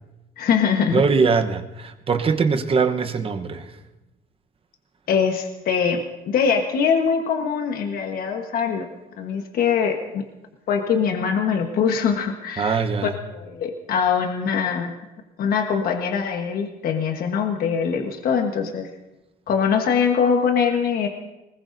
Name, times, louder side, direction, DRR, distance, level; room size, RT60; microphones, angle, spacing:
voice 1, 0.4-1.0 5.1-8.9 9.2-10.2 10.7-12.9 13.3-15.0 15.4-18.9 19.5-21.1, left 6 dB, 60° left, 4 dB, 1.3 m, -22 dB
voice 2, 0.9-3.7 12.6-13.1, right 5 dB, 35° right, 7 dB, 1.0 m, -21 dB
20.5 x 20.0 x 2.7 m, 1.0 s
cardioid pair, 110°, 17 cm